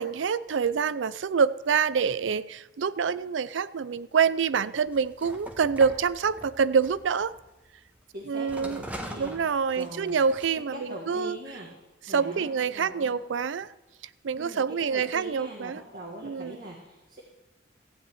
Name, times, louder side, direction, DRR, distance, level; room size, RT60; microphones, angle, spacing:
voice 1, 0.0-7.3 8.3-8.8 9.2-11.4 12.1-13.7 14.2-15.8 16.2-16.6, right 6 dB, 85° right, 17 dB, 0.5 m, -26 dB
sound 1, 4.9-8.0 8.5-10.5, equal, 10° right, 1.4 m, -42 dB
voice 2, 8.1-9.4 9.7-10.2 10.7-11.7 12.1-13.2 14.3-17.2, right 1 dB, 50° right, -1 dB, 1.8 m, -42 dB
15.0 x 5.6 x 9.0 m, 1.1 s
head